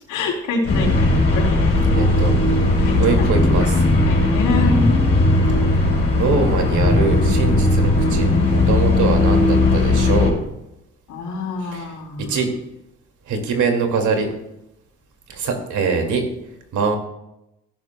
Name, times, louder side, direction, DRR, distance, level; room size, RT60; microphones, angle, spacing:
voice 1, 0.1-1.6 2.8-3.2 4.0-5.0 11.1-12.3, left 3 dB, 85° left, -1 dB, 3.3 m, -26 dB
sound 1, 0.7-10.3, left 2 dB, 50° left, 4.5 m, -17 dB
voice 2, 2.0-2.3 3.0-3.9 6.2-10.4 11.7-11.9 12.3-12.5 13.3-14.3 15.3-16.2 16.7-17.0, right 4 dB, 75° right, 3 dB, 2.3 m, -22 dB
15.5 x 11.0 x 2.3 m, 0.86 s
cardioid pair, 90°, 30 cm